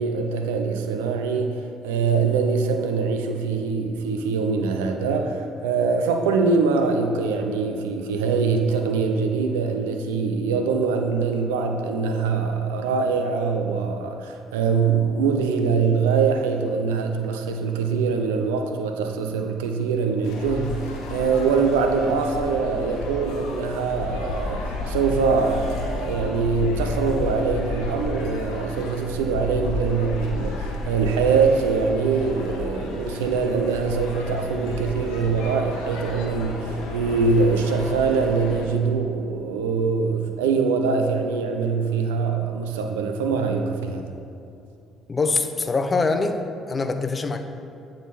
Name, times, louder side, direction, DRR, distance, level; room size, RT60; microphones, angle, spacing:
voice 1, 0.0-1.6 1.8-44.1, right 5 dB, 85° right, 5 dB, 0.5 m, -23 dB
sound 1, 20.2-38.7, left 2 dB, 75° left, 0.9 m, -32 dB
voice 2, 45.1-46.4 46.7-47.4, left 3 dB, 35° left, 7 dB, 0.6 m, -23 dB
9.0 x 3.8 x 4.1 m, 2.6 s
hypercardioid pair, 55°, 0 cm